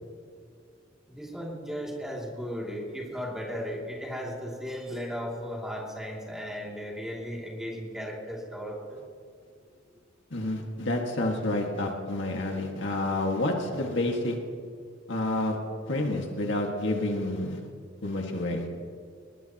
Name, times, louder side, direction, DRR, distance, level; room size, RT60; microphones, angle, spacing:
voice 1, 1.1-9.0, equal, 5° right, -3 dB, 2.7 m, -36 dB
voice 2, 10.3-14.4 15.1-15.6 15.9-17.6 18.0-18.7, left 1 dB, 65° left, 1 dB, 1.9 m, -29 dB
20.5 x 20.0 x 3.0 m, 2.2 s
head